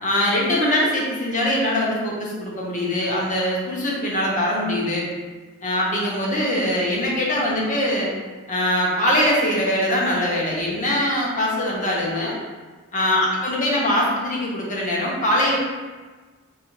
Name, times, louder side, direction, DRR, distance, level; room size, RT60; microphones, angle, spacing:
voice 1, 0.0-5.0 5.6-8.1 8.5-12.4 12.9-15.6, left 1 dB, 35° left, -4 dB, 0.9 m, -22 dB
3.4 x 2.8 x 4.3 m, 1.4 s
head